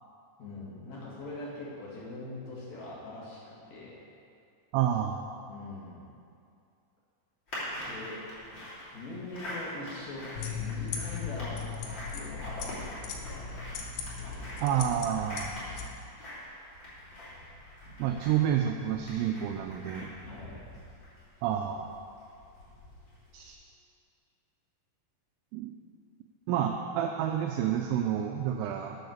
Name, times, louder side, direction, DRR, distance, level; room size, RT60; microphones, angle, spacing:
voice 1, 0.4-4.0 5.5-6.0 7.8-8.3 8.9-11.6 12.1-13.5 14.2-14.6 20.3-20.6, left 2 dB, 50° left, -7 dB, 2.3 m, -42 dB
voice 2, 4.7-5.2 14.6-15.5 18.0-20.1 21.4-21.9 23.3-23.6 25.5-25.7 26.5-29.0, right 10 dB, 85° right, 4 dB, 2.8 m, -29 dB
sound 1, 7.5-23.5, left 1 dB, 30° left, 2.9 m, -44 dB
sound 2, 10.4-15.9, left 6 dB, 90° left, 3.7 m, -38 dB
9.4 x 7.1 x 6.5 m, 2.5 s
omnidirectional pair, 5.8 m